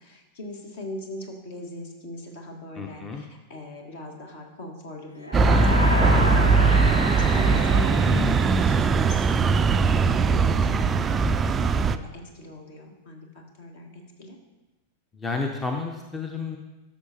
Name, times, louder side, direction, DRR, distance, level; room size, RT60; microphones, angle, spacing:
voice 1, 0.0-11.4 11.9-14.4, left 2 dB, 55° left, 2 dB, 1.5 m, -40 dB
voice 2, 2.8-3.3 7.3-7.7 15.1-16.6, left 4 dB, 15° left, 3 dB, 0.7 m, -32 dB
sound 1, 5.2-9.0, left 1 dB, 85° left, 0.7 m, -30 dB
sound 2, 5.3-12.0, right 4 dB, 20° right, 0.3 m, -20 dB
13.0 x 6.3 x 2.8 m, 1.1 s
figure-of-eight pair, 90°, 0 cm